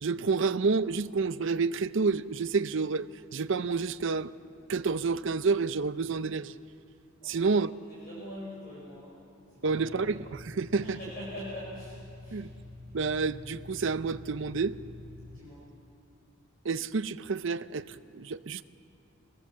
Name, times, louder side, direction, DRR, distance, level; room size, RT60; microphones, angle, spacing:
voice 1, 0.0-4.3 4.7-6.6 7.2-7.7 9.6-11.0 12.3-12.5 12.9-14.8 16.6-18.6, right 4 dB, 60° right, 0.6 m, -29 dB
voice 2, 7.2-9.2 9.5-10.1 10.8-12.4 15.2-15.6, left 1 dB, 40° left, 5.8 m, -44 dB
sound 1, 9.7-15.4, left 2 dB, 30° right, 2.4 m, -47 dB
24.0 x 18.5 x 7.5 m
head